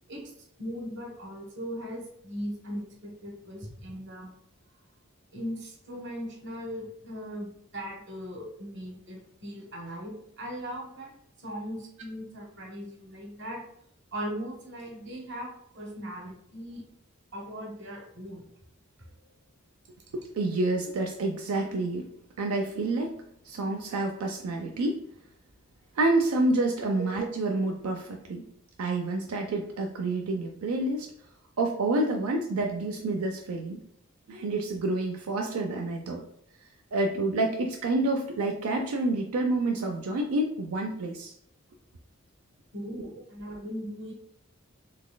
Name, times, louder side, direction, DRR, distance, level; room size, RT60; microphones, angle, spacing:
voice 1, 0.6-4.3 5.3-11.1 11.4-13.6 14.1-16.8 17.3-18.5 27.0-27.1 42.7-44.1, equal, 55° right, 1 dB, 1.0 m, -39 dB
voice 2, 20.1-22.1 22.4-23.2 23.4-25.0 26.0-28.4 28.8-31.1 31.6-33.8 34.3-36.2 36.9-41.3, right 2 dB, 90° right, 2 dB, 0.4 m, -28 dB
4.0 x 3.2 x 2.2 m, 0.74 s
head